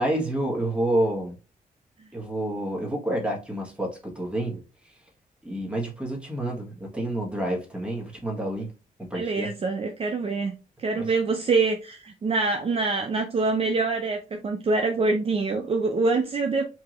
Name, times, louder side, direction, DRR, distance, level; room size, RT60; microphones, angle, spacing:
voice 1, 0.0-1.4 2.1-4.9 5.4-8.7 9.0-9.5 10.9-11.1, right 1 dB, 5° right, 1.5 m, -29 dB
voice 2, 9.1-16.7, right 3 dB, 40° right, 0.5 m, -25 dB
4.6 x 2.8 x 3.1 m
wide cardioid pair, 120°, 15 cm